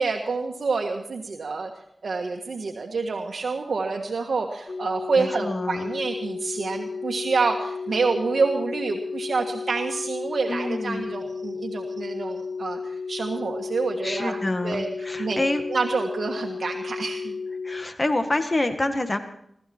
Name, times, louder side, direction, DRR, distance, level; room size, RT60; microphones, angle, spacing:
voice 1, 0.0-1.7 2.0-14.9 15.2-15.4 15.7-17.4, right 4 dB, 75° right, 2 dB, 1.6 m, -27 dB
sound 1, 4.7-17.9, left 4 dB, 65° left, 1.4 m, -33 dB
voice 2, 5.2-5.9 10.5-11.1 14.0-15.6 17.6-19.2, left 2 dB, 35° left, 8 dB, 1.8 m, -27 dB
22.0 x 13.5 x 4.4 m, 0.71 s
cardioid pair, 60°, 0 cm